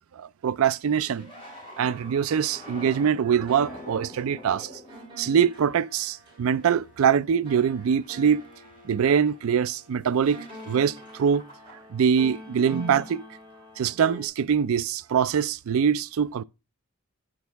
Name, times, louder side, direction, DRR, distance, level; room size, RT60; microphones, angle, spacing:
voice 1, 0.1-1.3 1.8-4.8 5.2-8.4 8.8-11.4 11.9-13.2 13.8-16.4, right 7 dB, 65° right, 0.4 m, -23 dB
sound 1, 0.6-5.9 6.5-6.8 7.2-8.9 9.5-9.8 10.1-11.9 12.2-13.3 15.0-15.2, left 1 dB, 25° left, 4.1 m, -47 dB
sound 2, 3.5-14.3, right 1 dB, 25° right, 3.9 m, -46 dB
9.3 x 6.3 x 3.4 m
head